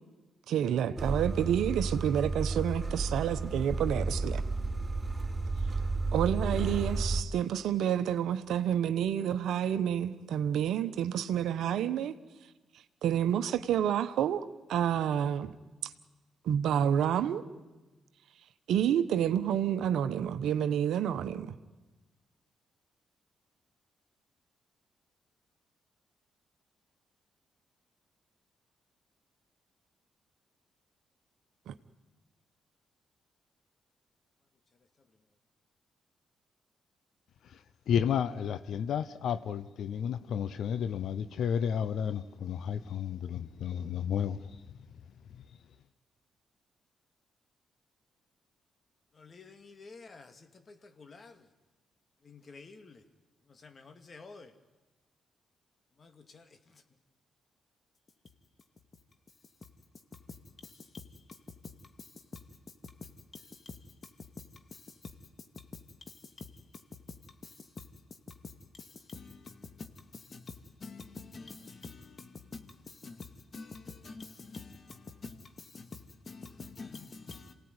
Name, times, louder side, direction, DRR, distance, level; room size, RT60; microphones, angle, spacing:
voice 1, 0.5-4.4 6.1-12.1 13.0-14.4 14.7-15.5 16.5-17.4 18.7-21.6 31.7-31.8, right 9 dB, 75° right, 1.1 m, -29 dB
sound 1, 1.0-7.2, right 3 dB, 20° right, 4.1 m, -32 dB
voice 2, 37.9-44.6, left 8 dB, 70° left, 0.8 m, -32 dB
voice 3, 49.1-51.5 52.2-53.0 53.5-54.5 56.0-56.8 60.6-61.0 62.0-62.1 62.8-62.9 63.3-63.8 64.7-65.1 66.1-66.5 67.4-67.8 68.8-77.5, left 4 dB, 45° left, 2.5 m, -48 dB
27.0 x 17.5 x 9.7 m
supercardioid pair, 50°, 0 cm